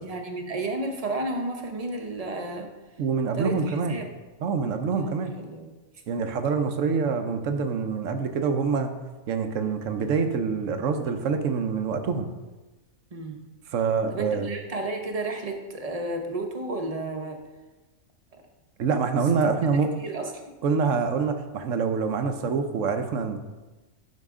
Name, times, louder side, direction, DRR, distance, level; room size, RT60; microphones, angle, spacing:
voice 1, 0.0-2.7 3.3-4.1 5.0-5.7 13.1-13.4 14.1-17.4 20.0-20.3, right 2 dB, 30° right, 3 dB, 0.8 m, -32 dB
voice 2, 3.0-4.0 4.4-5.3 6.1-9.0 9.3-12.3 13.7-14.5 18.8-19.9 20.6-23.4, right 5 dB, 65° right, 7 dB, 1.0 m, -26 dB
10.5 x 5.7 x 3.7 m, 1.2 s
omnidirectional pair, 1.5 m